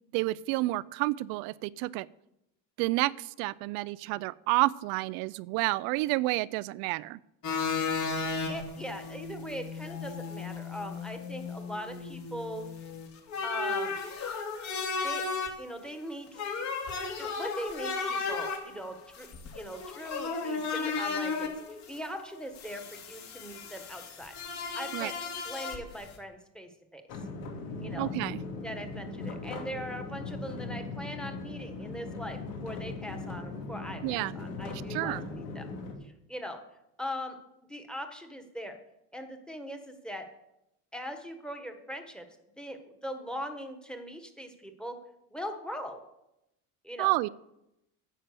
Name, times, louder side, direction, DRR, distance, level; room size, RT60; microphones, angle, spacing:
voice 1, 0.1-2.1 2.8-7.2 24.9-25.1 28.0-28.4 34.0-34.3 34.9-35.3 47.0-47.3, right 20 dB, 80° right, 20 dB, 0.5 m, -30 dB
sound 1, 7.4-26.2, left 4 dB, 50° left, 2.5 m, -35 dB
voice 2, 8.5-12.7 13.4-14.0 15.0-15.2 15.6-16.4 17.2-21.5 21.9-24.3 24.7-25.1 25.4-27.0 27.8-28.1 28.6-35.7 36.0-36.6 37.0-37.4 37.7-38.8 39.1-40.2 40.9-42.3 42.6-45.0 45.3-46.0 46.8-47.1, equal, ahead, 6 dB, 1.4 m, -40 dB
sound 2, 27.1-35.9, left 3 dB, 85° left, 2.8 m, -39 dB
10.0 x 7.4 x 6.8 m, 0.85 s
cardioid pair, 130°, 35 cm